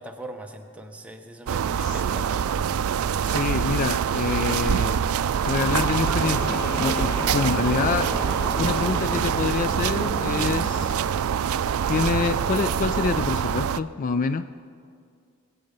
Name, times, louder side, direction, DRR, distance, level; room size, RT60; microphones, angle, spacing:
voice 1, 0.0-2.6, right 1 dB, 5° right, 3 dB, 0.9 m, -41 dB
sound 1, 1.5-13.8, right 8 dB, 90° right, 0.4 m, -25 dB
voice 2, 3.2-5.0 5.4-8.1 8.6-11.0 11.9-14.5, left 5 dB, 40° left, 12 dB, 0.3 m, -26 dB
sound 2, 5.6-10.9, equal, 10° left, 1.5 m, -32 dB
21.0 x 8.3 x 5.3 m, 2.3 s
head